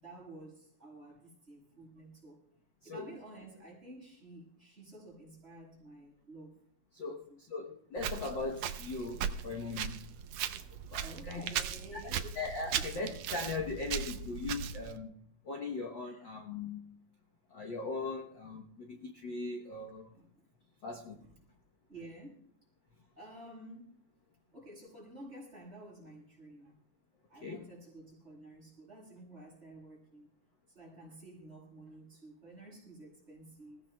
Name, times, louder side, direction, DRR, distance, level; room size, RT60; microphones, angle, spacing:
voice 1, 0.0-2.4 2.8-6.6 7.0-7.4 11.0-12.4 12.7-12.8 16.0-16.3 20.1-20.3 21.2-21.4 21.9-22.5 23.2-24.0 24.5-26.7 27.3-30.3 30.7-33.8, right 1 dB, 20° right, -3 dB, 6.2 m, -51 dB
voice 2, 6.9-10.1 10.7-11.5 11.9-12.0 12.3-17.0 17.5-20.1 20.8-21.3 27.4-27.7, left 3 dB, 75° left, 1 dB, 1.0 m, -40 dB
Walk footsteps, 8.0-15.0, right 9 dB, 75° right, 1.6 m, -38 dB
26.5 x 16.5 x 2.2 m, 0.69 s
omnidirectional pair, 3.6 m